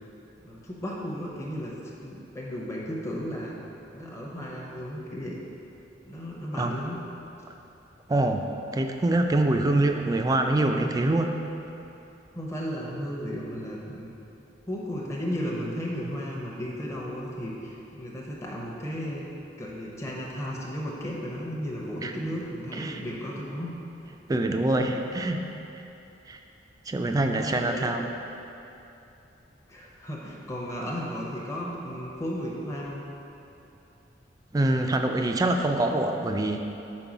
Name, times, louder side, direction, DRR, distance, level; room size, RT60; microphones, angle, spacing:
voice 1, 0.4-3.6 3.9-5.4 6.0-7.0 12.3-14.1 14.7-19.3 19.6-23.7 24.8-25.0 27.1-27.9 29.7-33.0, equal, 15° left, -4 dB, 0.8 m, -34 dB
voice 2, 8.1-8.4 8.7-11.4 22.0-22.1 22.7-23.0 24.3-25.5 26.3-26.4 26.9-28.1 34.5-36.6, right 2 dB, 20° right, 4 dB, 0.3 m, -25 dB
5.3 x 4.5 x 6.0 m, 2.9 s
head